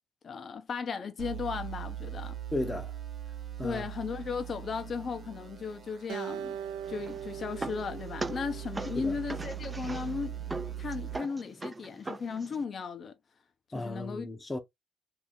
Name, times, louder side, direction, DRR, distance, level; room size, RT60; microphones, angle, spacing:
voice 1, 0.2-2.4 3.6-6.6 6.9-10.4 10.8-13.1 13.7-14.3, left 5 dB, 50° left, 0.8 m, -36 dB
sound 1, 1.2-11.2, right 11 dB, 60° right, 1.2 m, -41 dB
voice 2, 2.5-2.9 3.6-3.9 8.9-9.2 13.7-14.6, left 1 dB, 20° left, 0.8 m, -35 dB
Acoustic guitar, 6.1-9.4, right 9 dB, 85° right, 0.4 m, -41 dB
sound 2, 6.8-12.6, right 2 dB, 20° right, 0.4 m, -41 dB
2.8 x 2.6 x 3.6 m
cardioid pair, 90°, 0 cm